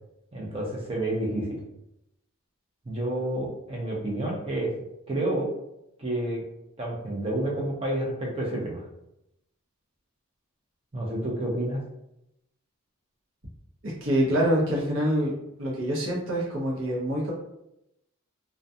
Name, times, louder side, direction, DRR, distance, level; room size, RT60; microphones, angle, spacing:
voice 1, 0.3-1.6 2.9-4.7 5.1-5.5 6.0-6.4 6.8-8.8 10.9-11.8, right 1 dB, 25° right, -3 dB, 0.6 m, -29 dB
voice 2, 13.8-15.3 15.6-17.3, equal, 65° right, -4 dB, 0.7 m, -25 dB
2.3 x 2.2 x 2.6 m, 0.84 s
head